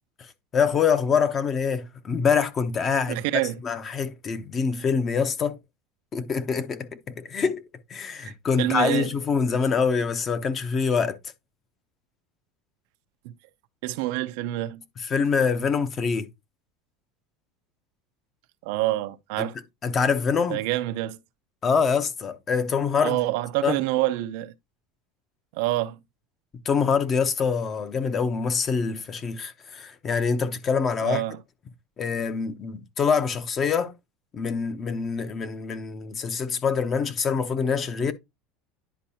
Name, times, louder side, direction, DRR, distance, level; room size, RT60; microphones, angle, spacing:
voice 1, 0.5-3.2 3.6-5.6 6.1-7.6 7.9-11.2 15.1-16.3 19.4-19.5 19.8-20.6 21.6-23.2 23.6-23.7 26.6-31.2 32.0-33.9 34.3-38.1, left 6 dB, 30° left, 0.9 m, -25 dB
voice 2, 3.1-3.5 8.2-8.3 8.6-9.1 13.2-13.3 13.8-14.8 18.6-19.6 20.5-21.2 23.0-24.5 25.5-26.0 31.0-31.4, right 16 dB, 70° right, 0.6 m, -27 dB
10.5 x 4.6 x 2.8 m
supercardioid pair, 145°, 0 cm